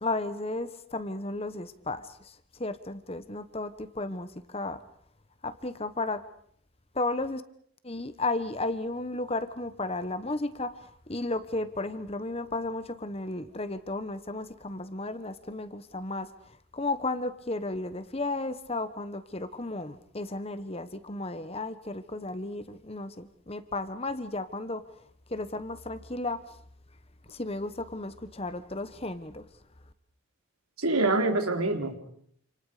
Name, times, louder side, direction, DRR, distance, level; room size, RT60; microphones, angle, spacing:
voice 1, 0.0-4.8 5.4-6.2 6.9-7.4 7.8-16.3 16.7-24.8 25.3-26.4 27.3-29.4, left 2 dB, 25° left, 1.2 m, -34 dB
voice 2, 30.8-31.9, right 2 dB, 80° right, 3.6 m, -25 dB
29.0 x 27.5 x 5.1 m
head